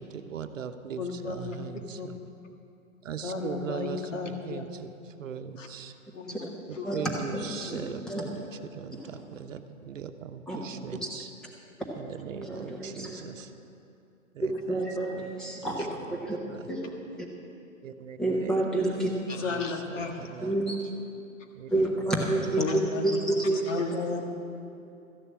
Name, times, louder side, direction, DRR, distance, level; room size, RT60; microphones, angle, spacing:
voice 1, 0.0-2.2 3.0-4.9 5.2-5.9 6.7-11.3 12.0-13.5 14.3-14.8 15.1-15.3 15.6-15.8 16.2-16.7 17.8-18.6 19.4-20.5 21.5-21.7 22.4-22.5, right 7 dB, 65° right, 9 dB, 0.9 m, -40 dB
voice 2, 1.0-1.6 2.0-2.1 3.2-4.6 5.6-5.7 6.1-6.5 6.7-7.0 7.7-7.9 19.3-20.3 21.7-21.9 22.6-23.2 23.7-24.2, left 4 dB, 60° left, 3 dB, 1.8 m, -33 dB
voice 3, 7.3-8.2 9.0-9.1 10.5-10.6 11.0-11.1 12.4-13.2 14.4-16.4 16.7-16.9 18.2-19.1 20.4-20.8 21.7-22.6 23.0-23.6, right 2 dB, ahead, -2 dB, 0.6 m, -29 dB
13.5 x 6.8 x 8.8 m, 2.7 s
hypercardioid pair, 140°, 42 cm